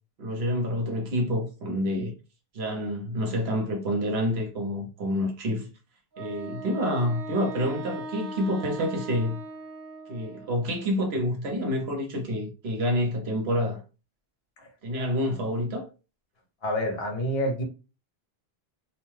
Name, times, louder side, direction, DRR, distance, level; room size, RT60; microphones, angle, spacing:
voice 1, 0.2-2.1 2.5-5.7 6.2-9.4 10.1-13.8 14.8-15.9, equal, 75° right, 1.1 m, -28 dB
Wind instrument woodwind instrument, 6.1-10.8, right 2 dB, 55° right, 0.7 m, -39 dB
voice 2, 16.6-17.6, equal, 70° left, 1.2 m, -28 dB
2.8 x 2.2 x 3.1 m
omnidirectional pair, 1.1 m